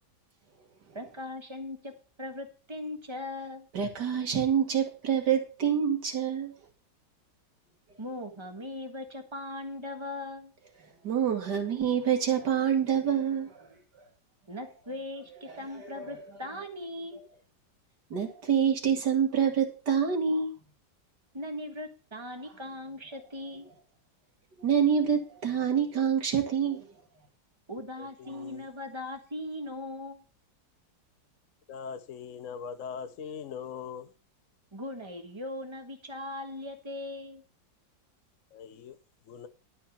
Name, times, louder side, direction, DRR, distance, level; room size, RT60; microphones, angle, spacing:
voice 1, 0.9-1.9 2.2-3.7 8.0-10.5 14.5-17.2 21.3-23.7 27.7-30.2 34.7-37.4, left 1 dB, 15° right, 1.5 m, -39 dB
voice 2, 3.7-6.5 11.0-13.7 13.9-14.0 15.4-16.2 17.1-17.2 18.1-20.5 24.6-26.9, right 7 dB, 60° right, 2.6 m, -27 dB
voice 3, 28.0-28.7 31.7-34.1 38.5-39.0 39.3-39.5, left 6 dB, 60° left, 0.9 m, -41 dB
12.0 x 4.8 x 7.2 m
omnidirectional pair, 2.0 m